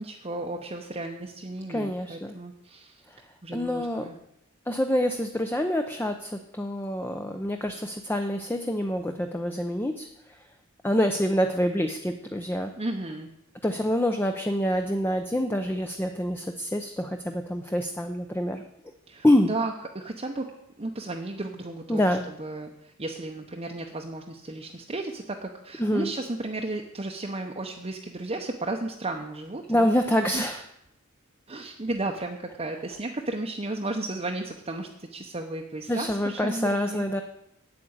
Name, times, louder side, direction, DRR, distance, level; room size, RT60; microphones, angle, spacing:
voice 1, 0.0-3.0 3.4-4.2 12.8-13.3 19.1-20.5 20.8-29.9 30.3-30.5 31.5-37.0, right 2 dB, 30° right, 1 dB, 0.8 m, -34 dB
voice 2, 1.7-2.3 3.5-4.1 4.7-10.1 10.8-12.7 13.6-18.6 19.2-19.5 21.9-22.3 25.8-26.1 29.7-30.6 35.9-37.2, equal, 10° left, 5 dB, 0.6 m, -26 dB
8.9 x 8.7 x 8.1 m, 0.80 s
head